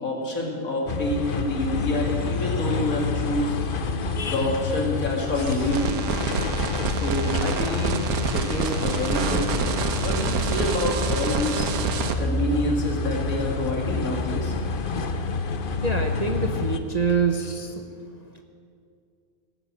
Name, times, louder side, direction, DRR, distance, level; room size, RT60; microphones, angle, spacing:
voice 1, 0.0-3.6 4.2-6.0 6.9-8.0 8.3-11.7 12.2-14.6, left 1 dB, 70° left, 0 dB, 2.9 m, -27 dB
sound 1, 0.9-16.8, left 4 dB, 45° left, 0.9 m, -28 dB
sound 2, 5.3-12.1, right 6 dB, 90° right, 1.5 m, -28 dB
voice 2, 15.8-17.8, right 5 dB, 35° right, 4 dB, 0.8 m, -25 dB
17.5 x 10.0 x 7.7 m, 2.3 s
omnidirectional pair, 1.5 m